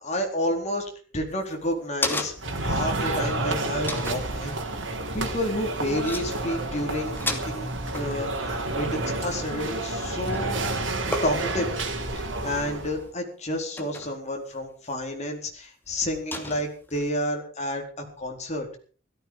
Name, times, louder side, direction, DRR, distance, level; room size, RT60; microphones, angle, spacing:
voice 1, 0.0-2.3 2.6-4.6 5.1-10.6 11.2-11.7 12.2-17.8 18.2-18.7, left 1 dB, 35° left, 2 dB, 4.4 m, -30 dB
sound 1, 1.3-2.7 3.1-3.2 3.9-4.3 5.7-5.8 6.0-6.3 6.5-6.8 7.0-9.9 10.2-10.6 11.1-11.7 12.4-12.9 13.8-14.2 14.8-14.9 16.3-17.0, left 2 dB, 10° left, 2.6 m, -33 dB
sound 2, 2.4-13.0, right 2 dB, 80° right, 3.4 m, -30 dB
17.0 x 14.0 x 5.5 m, 0.41 s
head